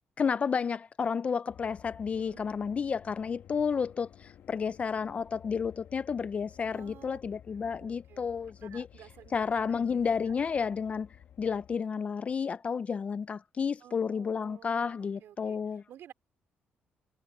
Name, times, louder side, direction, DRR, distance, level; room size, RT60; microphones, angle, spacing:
voice 1, 0.2-8.9 9.3-11.1 11.4-15.8, left 6 dB, 35° left, 0.4 m, -31 dB
sound 1, 1.5-11.8, left 10 dB, 70° left, 1.4 m, -54 dB
voice 2, 2.1-2.5 6.7-7.2 7.8-8.3 8.6-9.4 10.3-10.4 13.8-16.1, right 11 dB, 75° right, 4.2 m, -53 dB
cardioid pair, 120°, 4 cm